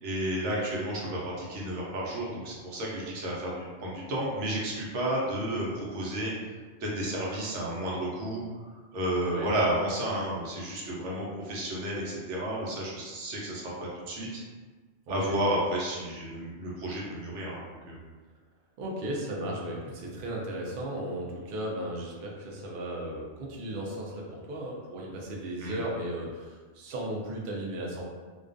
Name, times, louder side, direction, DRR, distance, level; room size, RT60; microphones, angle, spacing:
voice 1, 0.0-6.3 6.8-8.4 8.9-13.7 14.1-14.4 15.1-18.0 25.6-25.8, right 1 dB, 85° right, -4 dB, 1.0 m, -32 dB
voice 2, 9.2-9.5 15.1-15.4 18.8-28.0, right 1 dB, 60° right, -3 dB, 0.6 m, -35 dB
2.3 x 2.2 x 2.5 m, 1.4 s
omnidirectional pair, 1.2 m